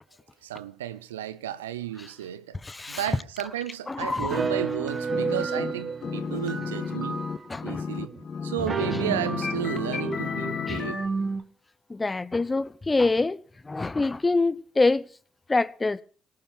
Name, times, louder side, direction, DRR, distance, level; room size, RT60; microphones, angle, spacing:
voice 1, 0.4-2.6 2.9-7.2 7.6-8.1 8.4-11.0, right 11 dB, 85° right, 0.7 m, -33 dB
voice 2, 2.6-3.0 3.9-4.4 7.5-7.9 10.7-10.8 11.9-15.1 15.5-16.0, left 3 dB, 25° left, 0.9 m, -25 dB
sound 1, 4.3-7.7 8.1-8.2 8.5-11.4, right 4 dB, 45° right, 2.1 m, -31 dB
sound 2, 5.1-5.7 6.0-11.1, left 6 dB, 45° left, 1.3 m, -32 dB
18.0 x 12.5 x 4.4 m
hypercardioid pair, 45°, 0 cm